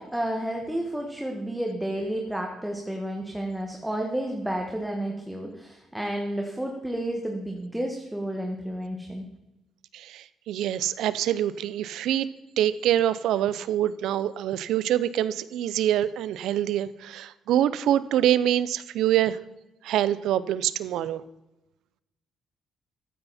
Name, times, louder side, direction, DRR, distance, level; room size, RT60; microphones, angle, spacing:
voice 1, 0.0-9.3, right 1 dB, 5° right, 1 dB, 1.7 m, -31 dB
voice 2, 9.9-12.3 12.6-19.4 19.8-21.2, right 11 dB, 85° right, 17 dB, 0.6 m, -25 dB
14.0 x 9.6 x 4.3 m, 0.98 s
cardioid pair, 90°, 0 cm